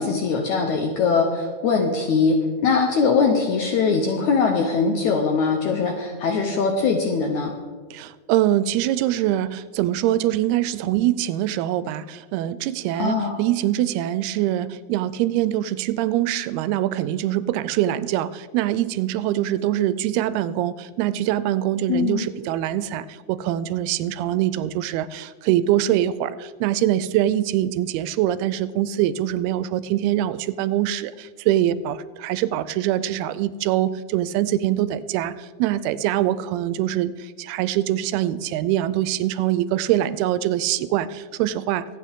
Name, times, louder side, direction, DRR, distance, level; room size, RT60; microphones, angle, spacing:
voice 1, 0.0-2.4 2.6-7.5 12.9-13.4 21.9-22.2, left 5 dB, 70° left, 3 dB, 1.9 m, -21 dB
voice 2, 7.9-41.9, right 13 dB, 85° right, 15 dB, 2.5 m, -23 dB
24.5 x 8.4 x 3.6 m, 1.5 s
omnidirectional pair, 4.5 m